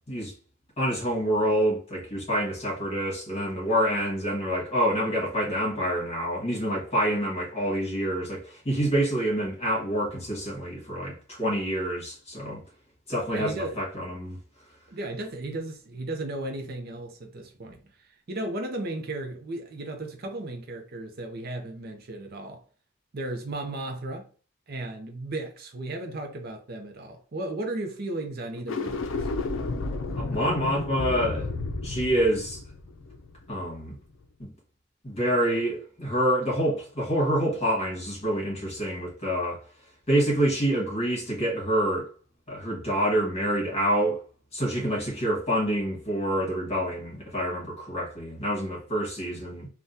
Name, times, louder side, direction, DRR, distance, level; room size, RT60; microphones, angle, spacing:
voice 1, 0.8-12.6 13.1-14.4 30.2-31.5 31.8-32.6 33.5-34.0 34.4-34.5 35.0-39.6 40.1-42.1 42.5-44.2 44.5-49.7, equal, 30° left, 1.5 m, -27 dB
voice 2, 13.3-13.8 14.9-22.6 23.1-24.3 24.7-29.3, right 2 dB, 50° right, 0.6 m, -35 dB
sound 1, 28.6-33.9, left 3 dB, 75° left, 0.5 m, -32 dB
3.5 x 2.2 x 2.7 m
head